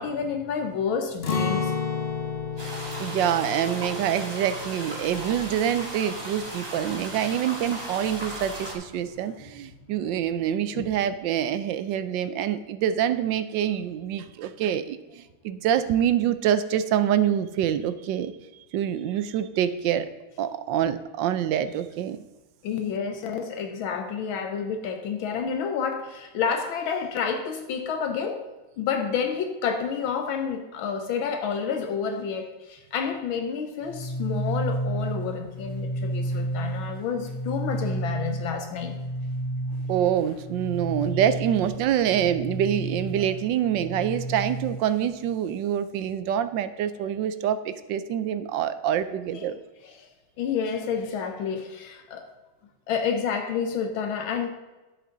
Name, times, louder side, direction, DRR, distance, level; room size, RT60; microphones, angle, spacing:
voice 1, 0.0-1.7 7.1-7.3 10.7-10.9 22.6-28.4 28.8-39.0 43.2-43.3 49.3-49.5 49.8-50.1 50.4-52.3 52.9-54.5, left 6 dB, 80° left, 6 dB, 1.7 m, -29 dB
Acoustic guitar, 1.2-7.1 7.4-7.6 8.1-8.6, left 5 dB, 45° left, 0.8 m, -32 dB
sound 1, 2.6-8.7, right 1 dB, 10° right, 2.5 m, -36 dB
voice 2, 3.0-18.3 18.7-20.1 20.4-22.2 39.9-49.6, right 10 dB, 75° right, 12 dB, 1.2 m, -26 dB
sound 2, 33.8-44.8, right 1 dB, 20° left, 2.5 m, -31 dB
12.0 x 7.8 x 3.9 m, 1.1 s
omnidirectional pair, 2.2 m